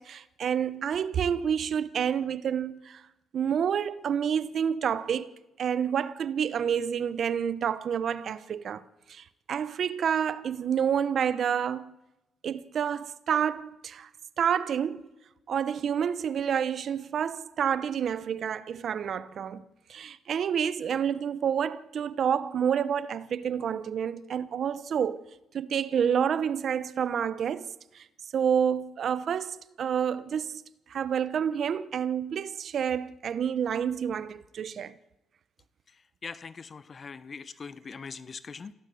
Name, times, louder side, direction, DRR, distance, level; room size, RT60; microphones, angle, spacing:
voice 1, 0.0-3.0 3.3-5.3 5.6-8.8 9.1-11.9 12.4-14.1 14.4-15.0 15.5-19.6 19.9-25.2 25.5-27.7 28.3-30.6 30.9-34.9, right 8 dB, 60° right, 0.9 m, -29 dB
voice 2, 35.9-38.7, left 5 dB, 40° left, 0.9 m, -42 dB
26.5 x 16.5 x 7.8 m
cardioid pair, 90°, 0 cm